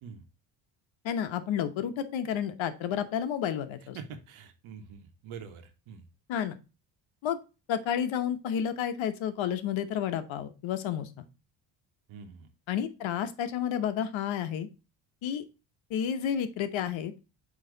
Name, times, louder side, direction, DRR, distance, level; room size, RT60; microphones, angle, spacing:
voice 1, 1.0-4.0 6.3-6.6 7.2-7.4 7.7-11.3 12.7-14.7 15.2-15.4 15.9-17.1, left 9 dB, 70° left, 10 dB, 1.0 m, -31 dB
voice 2, 3.9-6.1 12.1-12.5, right 6 dB, 80° right, 7 dB, 1.2 m, -45 dB
8.1 x 3.1 x 3.8 m, 0.30 s
cardioid pair, 85°, 48 cm